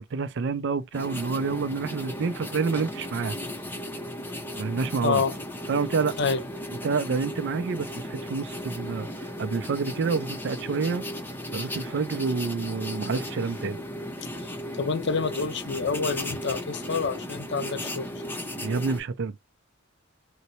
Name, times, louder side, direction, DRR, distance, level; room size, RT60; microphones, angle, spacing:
voice 1, 0.0-3.4 4.6-5.2 5.7-6.1 6.8-11.0 11.5-13.8 18.6-19.4, right 4 dB, 60° right, 0.4 m, -28 dB
sound 1, 0.9-19.0, left 1 dB, 10° left, 0.6 m, -36 dB
voice 2, 5.0-5.3 6.2-6.4 14.4-18.1, left 4 dB, 60° left, 0.7 m, -28 dB
4.0 x 2.1 x 2.8 m
head